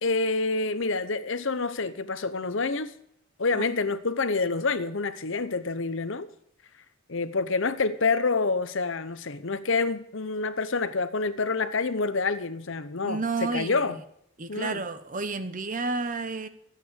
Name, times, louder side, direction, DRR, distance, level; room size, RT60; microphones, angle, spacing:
voice 1, 0.0-2.9 3.4-6.3 7.1-14.0 14.5-14.8, left 3 dB, 65° left, 0.9 m, -27 dB
voice 2, 13.0-13.8 14.4-16.5, right 3 dB, 40° right, 0.9 m, -31 dB
13.0 x 8.6 x 7.0 m
head